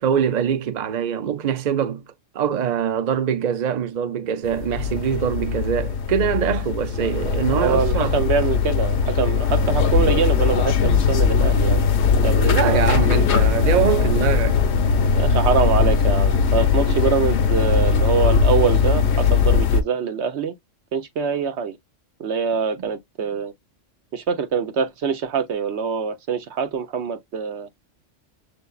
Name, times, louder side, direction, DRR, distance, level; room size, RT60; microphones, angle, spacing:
voice 1, 0.0-2.0 2.3-8.2 12.4-14.6, right 8 dB, 50° right, 0.5 m, -23 dB
sound 1, 4.4-19.8, left 5 dB, 70° left, 0.9 m, -19 dB
voice 2, 7.5-11.8 12.2-12.9 15.2-20.5 20.9-21.8 22.2-23.5 24.1-27.7, right 6 dB, 65° right, 1.0 m, -24 dB
6.6 x 2.5 x 2.3 m
omnidirectional pair, 1.3 m